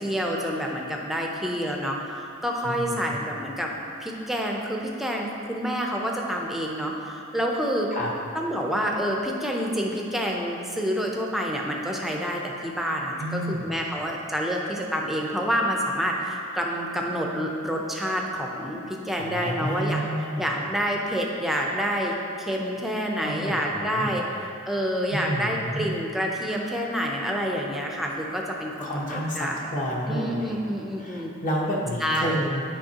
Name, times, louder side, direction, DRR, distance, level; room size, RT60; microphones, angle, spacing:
voice 1, 0.0-3.7 4.0-7.9 8.3-20.0 20.4-24.2 24.6-29.6 30.1-31.3 32.0-32.4, equal, ahead, -1 dB, 0.6 m, -28 dB
voice 2, 2.6-3.2 7.9-8.1 13.2-13.7 19.1-20.6 23.2-24.2 25.1-25.9 28.8-30.6 31.0-32.6, equal, 35° left, -3 dB, 1.0 m, -30 dB
9.0 x 5.2 x 2.9 m, 2.8 s
head